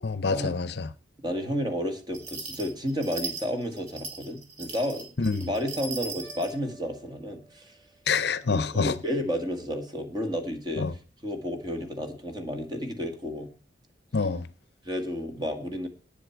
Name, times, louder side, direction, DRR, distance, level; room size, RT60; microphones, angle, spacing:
voice 1, 0.0-0.9 5.2-5.5 8.1-9.0 10.8-10.9 14.1-14.5, left 4 dB, 55° left, 0.6 m, -27 dB
voice 2, 1.2-5.1 5.4-7.8 8.7-10.9 11.2-13.5 14.8-15.9, equal, 20° right, 1.9 m, -31 dB
sound 1, 2.1-6.5, right 4 dB, 60° right, 3.4 m, -38 dB
sound 2, 6.2-8.5, right 3 dB, 10° left, 5.2 m, -54 dB
18.0 x 7.2 x 4.6 m
head